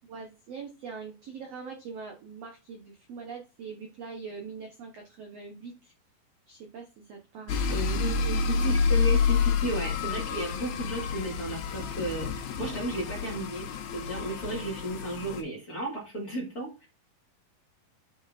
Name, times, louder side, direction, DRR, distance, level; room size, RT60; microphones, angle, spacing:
voice 1, 0.1-5.9 6.5-7.6 12.7-12.8 13.1-13.3, right 5 dB, 75° right, 3 dB, 1.4 m, -43 dB
sound 1, 7.5-15.4, left 5 dB, 85° left, 3.1 m, -28 dB
voice 2, 7.7-12.3 12.6-16.9, right 1 dB, 30° left, -3 dB, 1.9 m, -34 dB
9.9 x 5.4 x 2.5 m, 0.29 s
omnidirectional pair, 4.3 m